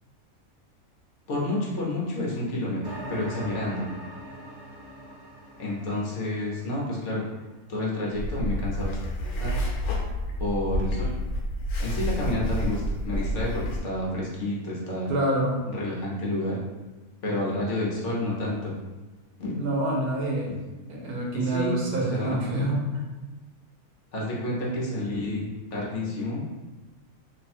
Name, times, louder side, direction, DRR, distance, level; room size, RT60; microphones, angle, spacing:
voice 1, 1.3-3.9 5.6-7.2 7.7-9.0 9.4-9.5 10.4-11.1 11.8-15.1 15.7-16.6 17.2-18.8 19.4-19.6 21.3-22.4 24.1-26.4, left 1 dB, 60° left, -4 dB, 1.1 m, -29 dB
sound 1, 2.8-7.3, right 1 dB, 20° right, 0.7 m, -42 dB
sound 2, 8.1-13.8, equal, 85° left, 1.1 m, -29 dB
voice 2, 15.1-15.6 19.5-20.5 20.9-23.0, right 1 dB, 85° right, -2 dB, 1.4 m, -26 dB
3.3 x 2.3 x 4.2 m, 1.2 s
omnidirectional pair, 1.5 m